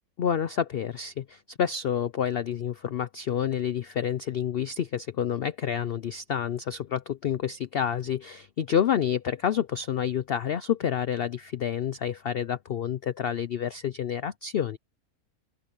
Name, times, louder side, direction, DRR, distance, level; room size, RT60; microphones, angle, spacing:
voice 1, 0.2-14.8, left 8 dB, 70° left, 0.5 m, -29 dB
open air
omnidirectional pair, 1.7 m